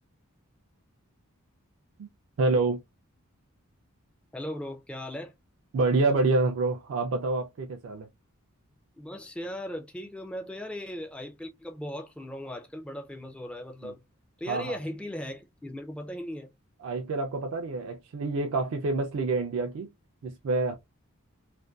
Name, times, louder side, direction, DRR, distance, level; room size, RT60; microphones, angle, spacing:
voice 1, 2.4-2.8 5.7-8.1 13.8-13.9 14.5-14.8 16.8-19.9 20.2-20.8, right 3 dB, 65° right, 0.4 m, -27 dB
voice 2, 4.3-5.3 9.0-14.0 14.4-16.5, left 1 dB, 5° left, 0.3 m, -38 dB
2.5 x 2.2 x 2.2 m
head